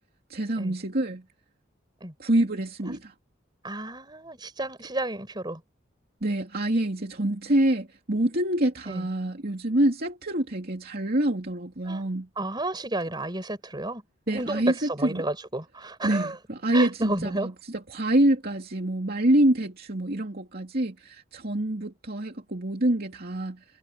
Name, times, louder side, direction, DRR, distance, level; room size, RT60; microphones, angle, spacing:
voice 1, 0.3-1.2 2.2-3.1 6.2-12.3 14.3-15.2 16.0-23.6, right 1 dB, 55° right, 2.8 m, -26 dB
voice 2, 3.6-5.6 8.9-9.1 11.9-12.0 12.4-16.4 16.7-17.5, right 2 dB, 25° right, 4.8 m, -32 dB
head